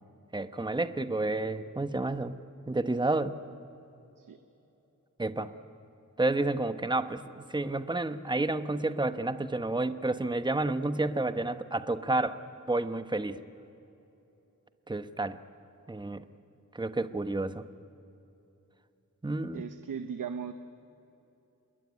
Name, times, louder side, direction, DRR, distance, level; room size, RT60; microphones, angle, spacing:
voice 1, 0.3-2.4 2.7-3.4 5.2-5.5 6.2-12.4 12.7-13.4 14.9-15.4 15.9-16.2 16.7-17.6 19.2-19.6, right 2 dB, 15° right, 11 dB, 1.0 m, -30 dB
voice 2, 19.5-20.5, right 7 dB, 80° right, 9 dB, 1.0 m, -37 dB
27.0 x 21.5 x 9.6 m, 2.9 s
wide cardioid pair, 115°, 32 cm